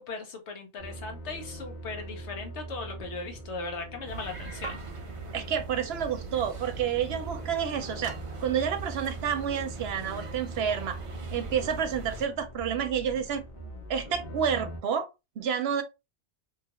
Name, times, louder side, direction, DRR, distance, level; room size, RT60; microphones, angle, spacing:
voice 1, 0.0-4.8, left 3 dB, 85° left, 1.2 m, -38 dB
sound 1, 0.8-14.8, right 1 dB, 50° left, 1.0 m, -42 dB
sound 2, 4.1-12.3, right 4 dB, 50° right, 0.4 m, -41 dB
voice 2, 5.3-8.1 8.4-11.0 11.3-13.4 13.9-15.1 15.4-15.8, right 8 dB, 70° right, 0.8 m, -29 dB
3.0 x 2.3 x 2.8 m
omnidirectional pair, 1.1 m